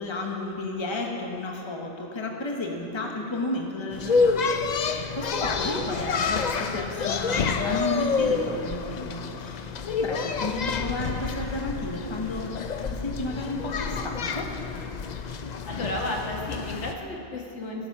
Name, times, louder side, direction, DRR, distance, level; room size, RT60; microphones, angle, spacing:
voice 1, 0.0-4.5 4.8-12.5 12.9-14.5, left 2 dB, 25° left, 1 dB, 1.1 m, -32 dB
sound 1, 3.9-16.9, left 5 dB, 50° left, 0.6 m, -28 dB
voice 2, 15.6-17.9, left 1 dB, 85° left, 0 dB, 1.8 m, -33 dB
18.0 x 7.0 x 5.8 m, 2.8 s
omnidirectional pair, 1.2 m